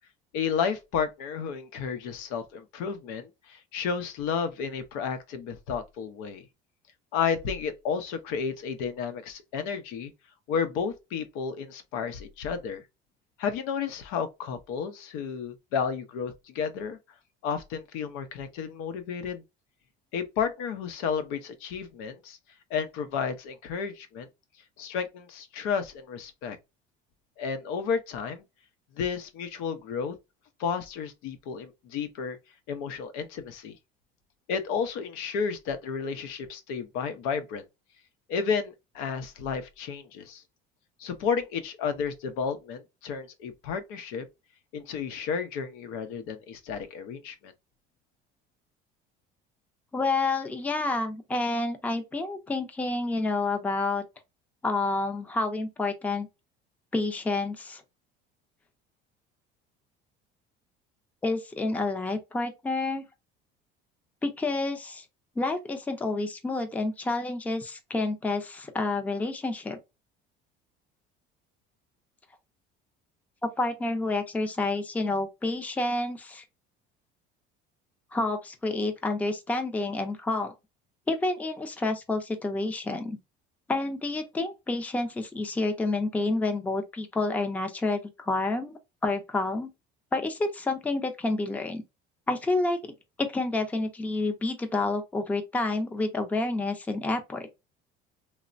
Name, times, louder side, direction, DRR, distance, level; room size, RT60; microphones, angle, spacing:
voice 1, 0.3-6.5 7.1-10.1 10.5-12.8 13.4-17.0 17.4-19.4 20.1-22.4 22.7-24.3 24.8-26.6 27.4-28.4 29.0-30.1 30.6-32.4 32.7-33.8 34.5-37.6 38.3-40.4 41.0-44.3 44.7-47.5, left 6 dB, 85° left, 0.6 m, -32 dB
voice 2, 49.9-54.0 54.6-56.3 56.9-57.8 61.2-63.1 64.2-65.0 65.4-69.8 73.6-76.4 78.1-80.5 81.1-83.2 83.7-89.7 90.1-91.8 92.3-92.8 93.2-97.5, left 2 dB, 5° left, 0.4 m, -29 dB
3.1 x 2.1 x 2.5 m
cardioid pair, 155°, 21 cm